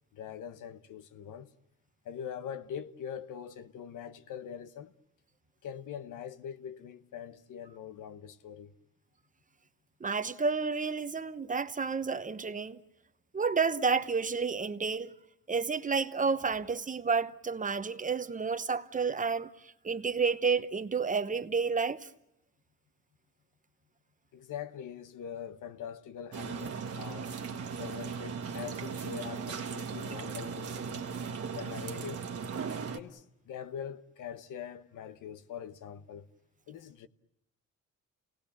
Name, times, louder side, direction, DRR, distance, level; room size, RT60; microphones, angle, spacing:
voice 1, 0.1-1.5 2.0-4.9 5.6-8.7 24.3-27.3 27.8-31.1 31.5-32.2 32.9-36.3 36.7-37.1, left 8 dB, 90° left, 1.1 m, -43 dB
voice 2, 10.0-12.8 13.3-15.1 15.5-19.5 19.8-22.1, right 5 dB, 25° right, 0.9 m, -30 dB
sound 1, 26.3-33.0, right 6 dB, 50° right, 1.5 m, -37 dB
29.0 x 18.5 x 8.9 m
cardioid pair, 120°, 30 cm